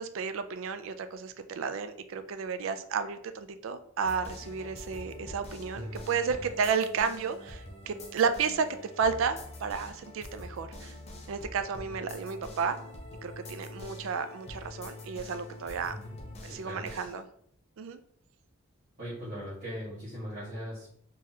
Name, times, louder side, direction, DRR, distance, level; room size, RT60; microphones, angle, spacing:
voice 1, 0.0-8.7 9.0-10.9 11.3-12.8 13.2-15.9 16.4-17.2 17.8-18.0, right 6 dB, 65° right, 10 dB, 0.3 m, -32 dB
sound 1, 4.0-17.2, left 1 dB, 30° left, 0.6 m, -45 dB
voice 2, 5.7-6.4 15.9-16.9 19.0-20.9, equal, 45° right, -11 dB, 1.3 m, -40 dB
3.8 x 2.8 x 2.7 m, 0.65 s
head